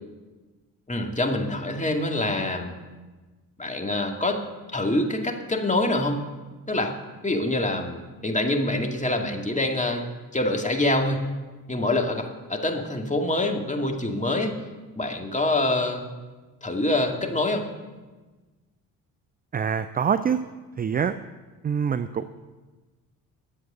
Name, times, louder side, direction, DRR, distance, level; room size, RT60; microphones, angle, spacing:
voice 1, 0.9-2.7 3.6-4.4 4.7-6.2 6.7-6.9 7.2-10.1 10.3-11.2 11.7-14.6 15.0-16.0 16.6-17.7, left 2 dB, 15° left, 2 dB, 2.2 m, -25 dB
voice 2, 19.5-20.4 20.8-21.2 21.6-22.3, right 7 dB, 20° right, 13 dB, 0.4 m, -25 dB
11.5 x 7.7 x 6.7 m, 1.3 s
hypercardioid pair, 50°, 48 cm